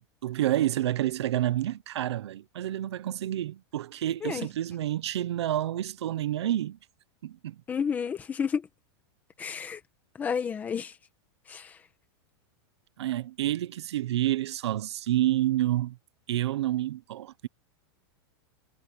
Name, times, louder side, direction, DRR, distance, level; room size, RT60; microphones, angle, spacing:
voice 1, 0.0-6.8 7.2-7.6 13.0-16.0 16.3-17.5, right 13 dB, 80° right, 1.1 m, -29 dB
voice 2, 7.7-8.7 9.4-9.8 10.1-11.0 11.5-11.8, left 6 dB, 10° left, 1.7 m, -31 dB
supercardioid pair, 180°, 14 cm